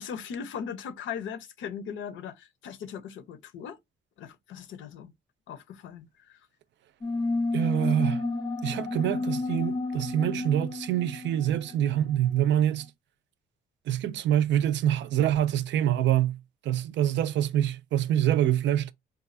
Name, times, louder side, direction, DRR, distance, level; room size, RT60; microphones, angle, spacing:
voice 1, 0.0-3.8 4.2-5.1 5.5-6.4, left 7 dB, 80° left, 0.6 m, -39 dB
sound 1, 7.0-12.2, left 3 dB, 20° left, 0.5 m, -31 dB
voice 2, 7.5-8.2 8.6-12.9 13.9-16.4 16.6-18.9, right 11 dB, 65° right, 0.4 m, -25 dB
4.0 x 2.3 x 2.5 m
cardioid pair, 90°, 20 cm